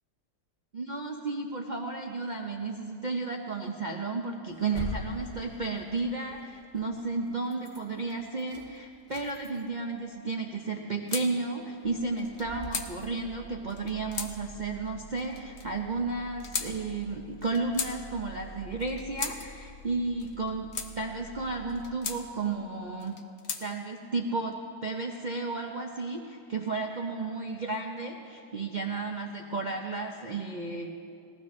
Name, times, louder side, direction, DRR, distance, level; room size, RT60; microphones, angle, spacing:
voice 1, 0.7-23.1 23.6-24.6 24.8-30.9, right 3 dB, 70° right, 1 dB, 0.4 m, -33 dB
sound 1, 4.5-7.1 7.4-7.8 8.1-9.9 10.3-10.4 10.6-10.7 11.3-11.6 11.8-22.0, equal, 20° left, 1.4 m, -45 dB
sound 2, 11.1-11.3 12.2-12.9 13.7-14.3 15.2-15.7 16.4-16.7 17.4-17.9 18.8-19.4 20.2-20.9 21.7-22.2 23.0-23.6, left 5 dB, 50° left, 0.9 m, -35 dB
19.0 x 15.5 x 3.2 m, 2.5 s
omnidirectional pair, 1.8 m